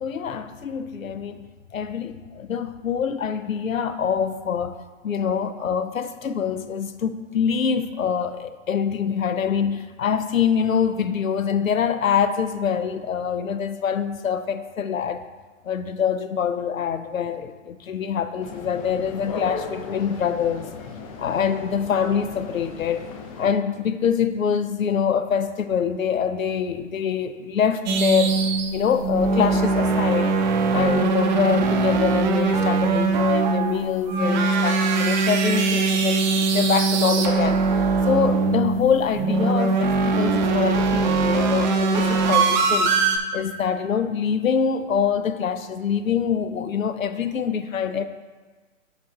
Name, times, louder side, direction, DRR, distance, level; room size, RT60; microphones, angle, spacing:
voice 1, 0.0-4.8 5.0-15.2 15.6-20.7 21.2-23.1 23.4-28.4 28.7-30.4 30.7-37.6 38.1-42.9 43.3-48.1, left 7 dB, 90° left, 11 dB, 0.6 m, -25 dB
sound 1, 18.4-23.5, left 4 dB, 25° left, 0.6 m, -36 dB
sound 2, 27.9-43.2, right 4 dB, 35° right, 0.7 m, -21 dB
10.5 x 5.8 x 2.4 m, 1.4 s
hypercardioid pair, 130°, 40 cm